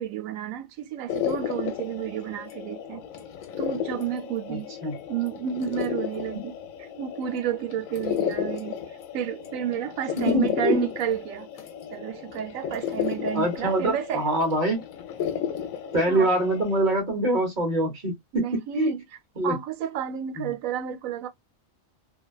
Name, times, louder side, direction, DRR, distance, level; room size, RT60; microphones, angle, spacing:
voice 1, 0.0-3.0 3.6-4.7 5.1-6.5 7.0-11.5 11.9-14.2 16.1-16.3 18.3-19.0 19.4-21.3, right 10 dB, 85° right, 1.0 m, -31 dB
sound 1, 1.1-16.8, left 9 dB, 85° left, 1.0 m, -33 dB
voice 2, 4.5-4.9 6.3-6.4 10.2-10.9 13.3-14.8 15.9-18.1 18.7-18.9 19.4-19.6 20.4-20.5, right 1 dB, 40° right, 1.0 m, -24 dB
2.6 x 2.2 x 2.2 m
omnidirectional pair, 1.4 m